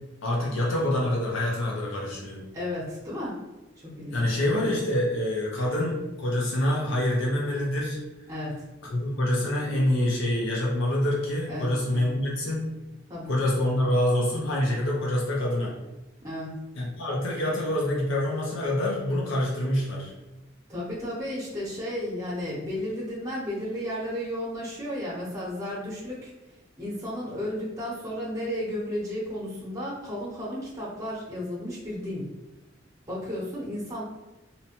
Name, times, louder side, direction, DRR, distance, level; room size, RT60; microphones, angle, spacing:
voice 1, 0.2-2.4 4.1-8.0 8.9-12.6 13.3-15.7 16.7-20.1, left 1 dB, 70° left, -3 dB, 0.6 m, -26 dB
voice 2, 2.5-3.3 3.8-4.4 8.3-8.5 11.5-12.0 13.1-13.3 16.2-16.5 20.7-26.3 26.8-32.3 33.1-34.0, left 1 dB, 15° right, -7 dB, 0.8 m, -33 dB
2.7 x 2.1 x 2.9 m, 1.1 s
head